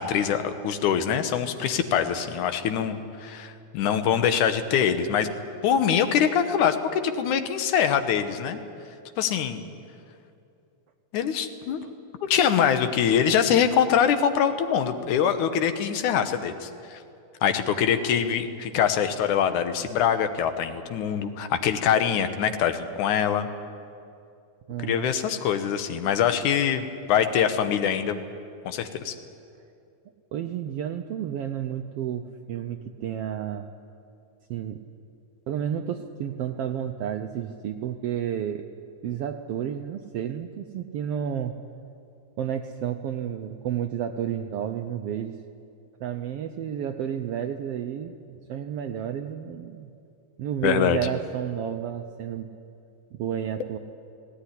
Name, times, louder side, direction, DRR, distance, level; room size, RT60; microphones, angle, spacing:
voice 1, 0.0-5.3 5.6-8.6 9.2-9.6 11.1-11.8 12.2-17.0 17.4-23.5 24.8-28.2 28.7-29.2 50.6-51.0, left 8 dB, 80° left, 9 dB, 2.5 m, -24 dB
voice 2, 24.7-25.1 30.3-33.7 34.5-34.8 35.5-38.7 39.0-41.6 42.4-45.3 46.0-49.9 50.4-52.5 53.1-53.8, right 9 dB, 80° right, 6 dB, 1.4 m, -31 dB
18.0 x 17.5 x 9.9 m, 2.5 s
omnidirectional pair, 3.4 m